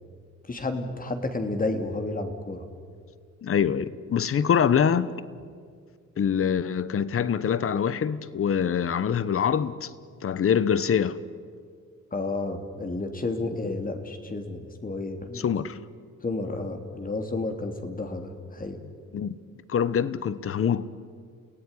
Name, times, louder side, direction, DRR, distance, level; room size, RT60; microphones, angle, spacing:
voice 1, 0.4-2.7 12.1-15.5 16.2-18.8, left 2 dB, 30° left, 3.1 m, -31 dB
voice 2, 3.4-5.1 6.2-9.9 10.2-11.2 15.3-15.8 19.1-19.4 19.7-20.9, left 7 dB, 45° left, 1.2 m, -24 dB
29.5 x 17.0 x 9.9 m
cardioid pair, 90°, 30 cm